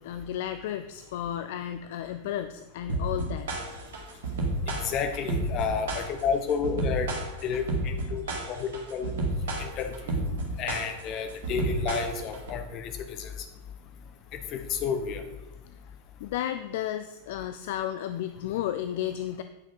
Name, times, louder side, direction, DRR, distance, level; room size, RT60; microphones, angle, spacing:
voice 1, 0.0-3.5 8.2-8.5 16.2-19.4, left 11 dB, 55° left, 10 dB, 0.4 m, -33 dB
sound 1, 2.9-12.5, right 2 dB, 55° right, 2.2 m, -31 dB
voice 2, 4.8-7.1 7.4-8.2 8.5-9.1 9.6-10.2 10.6-13.3 14.5-15.2, left 6 dB, 35° left, 6 dB, 1.1 m, -31 dB
9.2 x 6.1 x 5.3 m, 1.0 s
figure-of-eight pair, 90°, 0 cm